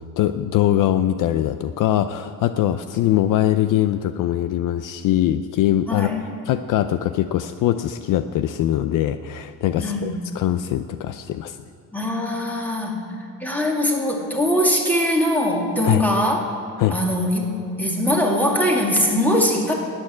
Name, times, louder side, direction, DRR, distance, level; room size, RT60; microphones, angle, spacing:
voice 1, 0.2-6.1 6.5-11.6 15.8-16.0 16.8-17.0, left 12 dB, 60° left, 11 dB, 0.6 m, -22 dB
voice 2, 5.9-6.2 9.8-10.2 11.9-13.1 13.4-16.4 16.9-17.5 17.8-19.7, equal, 5° left, -1 dB, 2.5 m, -21 dB
11.5 x 9.0 x 9.5 m, 2.5 s
cardioid pair, 125°, 35 cm